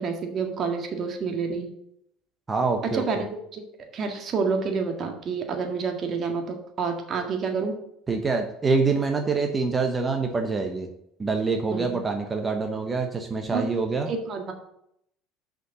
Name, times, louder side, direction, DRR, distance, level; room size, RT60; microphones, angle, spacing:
voice 1, 0.0-1.7 2.9-3.3 3.5-3.6 3.9-7.7 11.7-12.0 13.5-13.6 14.1-14.5, right 5 dB, 40° right, 3 dB, 1.8 m, -28 dB
voice 2, 2.5-3.0 8.1-10.9 11.2-14.1, right 4 dB, 20° right, 4 dB, 1.0 m, -25 dB
6.6 x 5.1 x 7.0 m, 0.74 s
supercardioid pair, 110°, 0 cm